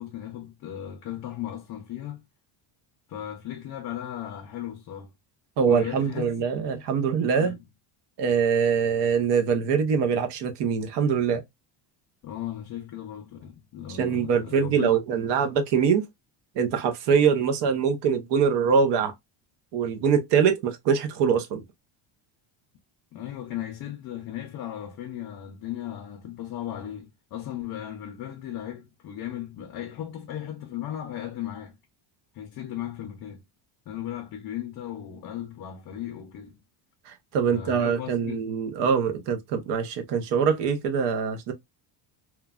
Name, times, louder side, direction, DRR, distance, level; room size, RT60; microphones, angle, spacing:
voice 1, 0.0-2.2 3.1-5.1 5.7-6.3 7.4-7.6 12.2-15.0 23.1-31.8 32.3-33.4 33.9-36.6 37.5-38.4, left 11 dB, 45° left, 0.5 m, -36 dB
voice 2, 5.6-7.6 8.2-11.4 13.9-16.1 16.6-19.1 19.7-21.6 37.1-41.5, right 6 dB, 55° right, 0.7 m, -23 dB
3.0 x 2.2 x 2.3 m
cardioid pair, 170°, 50 cm